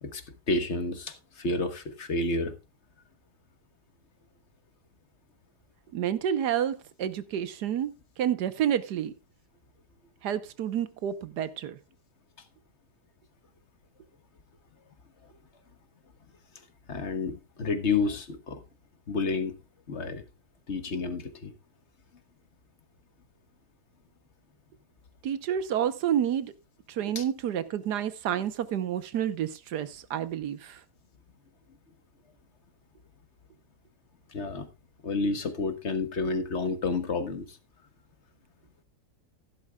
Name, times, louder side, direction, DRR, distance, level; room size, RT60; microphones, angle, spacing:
voice 1, 0.0-2.5 16.9-18.6 19.1-19.5 19.9-20.2 20.7-21.5 27.1-27.2 34.3-34.7 35.0-37.6, left 3 dB, 45° left, 1.4 m, -30 dB
voice 2, 5.9-7.9 8.2-9.1 10.2-11.8 25.2-26.5 26.9-30.8, right 9 dB, 80° right, 1.5 m, -29 dB
14.5 x 12.0 x 2.3 m
omnidirectional pair, 1.8 m